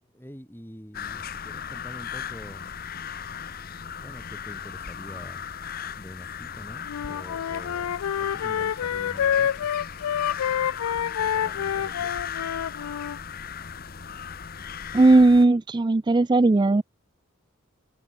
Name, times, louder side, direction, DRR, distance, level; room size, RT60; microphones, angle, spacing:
voice 1, 0.0-2.8 4.0-5.5 5.9-9.7 11.2-12.2, equal, 10° left, 7.1 m, -45 dB
sound 1, 0.9-15.5, left 7 dB, 45° left, 0.9 m, -37 dB
Wind instrument woodwind instrument, 6.9-13.2, left 9 dB, 90° left, 0.4 m, -27 dB
voice 2, 14.9-16.8, right 2 dB, 20° right, 0.3 m, -17 dB
head